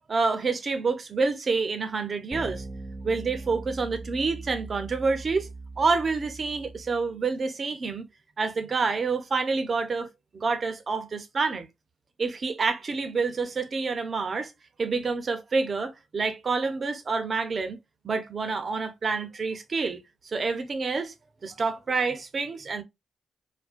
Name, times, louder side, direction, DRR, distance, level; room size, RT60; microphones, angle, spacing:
voice 1, 0.1-2.6 3.0-5.5 5.8-8.1 8.4-11.7 12.2-14.5 14.8-17.8 18.0-20.0 20.2-21.1 21.4-22.8, right 4 dB, 45° right, 0.5 m, -28 dB
sound 1, 2.3-7.1, right 2 dB, 10° left, 1.0 m, -40 dB
2.4 x 2.2 x 2.4 m
cardioid pair, 70°, 0 cm